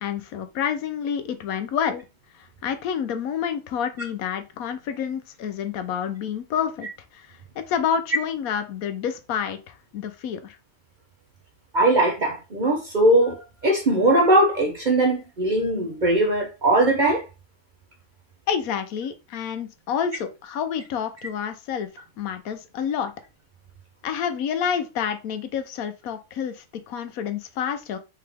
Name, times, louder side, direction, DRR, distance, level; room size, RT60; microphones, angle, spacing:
voice 1, 0.0-2.1 2.6-6.9 7.2-7.3 7.6-10.6 18.5-23.1 24.0-28.0, left 8 dB, 80° left, 1.1 m, -28 dB
voice 2, 11.7-17.3, right 1 dB, 45° right, 0.6 m, -20 dB
3.8 x 3.4 x 3.3 m
omnidirectional pair, 1.5 m